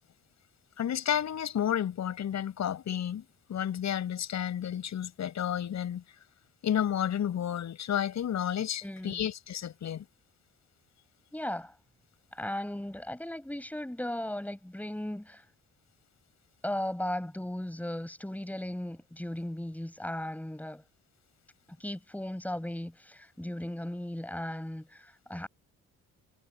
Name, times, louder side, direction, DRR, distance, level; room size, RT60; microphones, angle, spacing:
voice 1, 0.8-3.2 3.5-6.0 6.6-10.0, left 10 dB, 65° left, 7.0 m, -31 dB
voice 2, 8.8-9.2 11.3-11.7 12.3-15.4 16.6-20.8 21.8-25.5, left 1 dB, 5° left, 5.9 m, -36 dB
cardioid pair, 90°, 30 cm